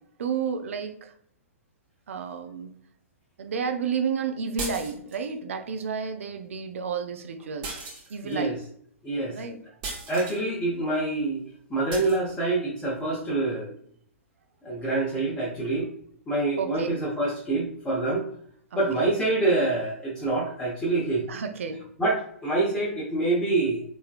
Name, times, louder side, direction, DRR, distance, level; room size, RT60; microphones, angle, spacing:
voice 1, 0.2-1.1 2.1-2.7 3.4-7.8 8.1-8.6 9.3-9.6 16.6-16.9 18.7-19.1 21.3-21.8, right 6 dB, 65° right, 8 dB, 0.4 m, -31 dB
sound 1, 4.6-5.3 7.6-8.4 9.8-10.4 11.9-12.2, right 3 dB, 35° right, 0.9 m, -36 dB
voice 2, 8.2-8.6 9.0-9.4 10.1-11.4 11.7-13.7 14.6-15.9 16.3-18.2 18.7-21.2 22.0-23.8, right 2 dB, 10° left, -6 dB, 0.8 m, -26 dB
3.5 x 3.2 x 2.4 m, 0.64 s
figure-of-eight pair, 115°, 8 cm